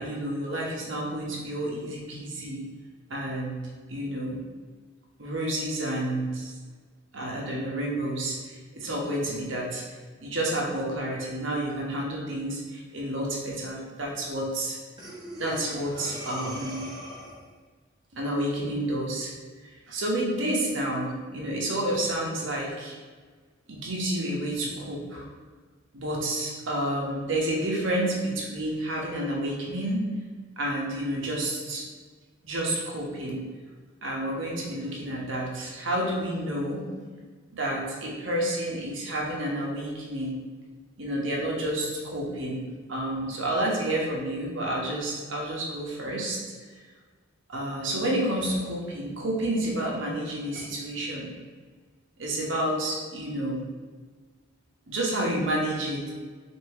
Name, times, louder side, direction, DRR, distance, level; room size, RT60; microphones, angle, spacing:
voice 1, 0.0-2.6 3.1-3.6 3.9-4.4 5.2-6.5 7.1-9.8 10.2-14.8 15.4-16.9 18.1-19.3 19.9-23.0 23.7-25.3 25.9-30.0 30.6-31.9 32.4-33.4 34.0-36.9 37.5-40.4 41.0-46.4 47.5-51.3 52.2-53.6 54.9-56.1, right 1 dB, 70° right, -2 dB, 1.0 m, -30 dB
Breathing, 15.0-17.5, left 1 dB, 20° right, 0.8 m, -40 dB
4.3 x 2.6 x 3.4 m, 1.4 s
head